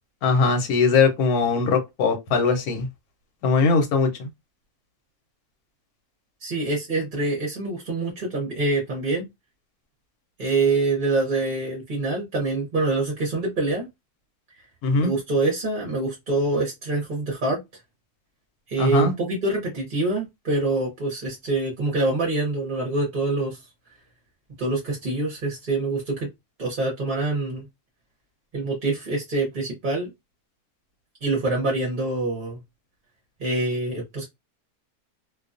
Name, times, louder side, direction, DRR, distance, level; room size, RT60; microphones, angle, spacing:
voice 1, 0.2-2.9 3.4-4.3 14.8-15.1 18.8-19.1, left 4 dB, 75° left, 1.2 m, -20 dB
voice 2, 6.4-9.3 10.4-13.9 15.0-17.6 18.7-23.6 24.6-26.3 26.6-27.6 28.5-30.1 31.2-32.6 33.4-34.3, right 2 dB, 45° right, 0.8 m, -25 dB
2.6 x 2.2 x 2.4 m
omnidirectional pair, 1.6 m